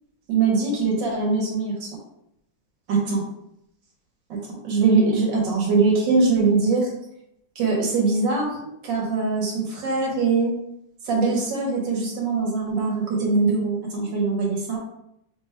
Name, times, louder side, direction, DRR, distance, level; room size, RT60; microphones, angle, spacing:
voice 1, 0.3-1.9 2.9-3.2 4.3-6.9 7.6-8.5 8.8-10.5 11.0-14.8, right 4 dB, 85° right, -2 dB, 1.7 m, -22 dB
3.9 x 2.3 x 4.4 m, 0.79 s
omnidirectional pair, 1.9 m